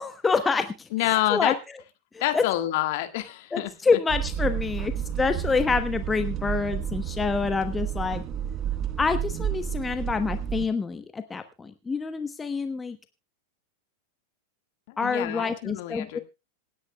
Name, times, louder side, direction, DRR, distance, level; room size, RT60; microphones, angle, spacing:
voice 1, 0.0-1.5 2.1-2.4 3.5-8.2 9.0-13.0 15.0-16.2, left 4 dB, 15° left, 9 dB, 1.1 m, -27 dB
voice 2, 0.9-1.5 2.2-3.7 14.9-16.2, left 15 dB, 50° left, 7 dB, 1.8 m, -27 dB
sound 1, 4.1-10.7, right 9 dB, 30° right, 1.2 m, -31 dB
26.5 x 9.9 x 2.3 m, 0.27 s
figure-of-eight pair, 90°, 0 cm